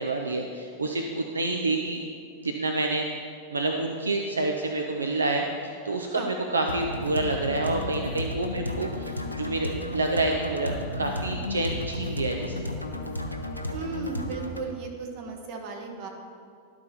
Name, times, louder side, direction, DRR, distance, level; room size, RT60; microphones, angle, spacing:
voice 1, 0.0-2.0 2.4-3.1 3.5-12.7, right 2 dB, 75° right, 3 dB, 0.5 m, -28 dB
sound 1, 6.7-14.7, left 1 dB, 90° left, 0.6 m, -33 dB
voice 2, 13.7-16.1, right 3 dB, 45° right, 2 dB, 1.2 m, -35 dB
12.0 x 4.4 x 4.3 m, 2.2 s
figure-of-eight pair, 90°, 0 cm